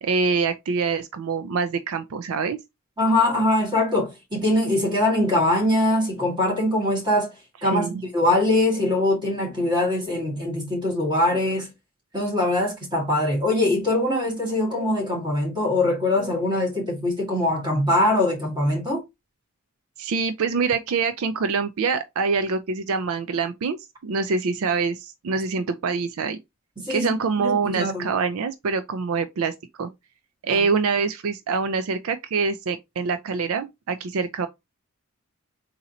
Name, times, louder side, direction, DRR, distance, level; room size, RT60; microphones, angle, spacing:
voice 1, 0.0-2.6 7.6-8.0 20.0-23.8 24.0-26.4 26.9-29.9 30.4-34.5, right 4 dB, 75° right, 0.4 m, -25 dB
voice 2, 3.0-7.3 7.6-11.7 12.1-19.0 26.9-27.1 27.4-28.1 30.5-30.7, left 1 dB, 20° right, 1.9 m, -22 dB
3.8 x 2.8 x 4.1 m
head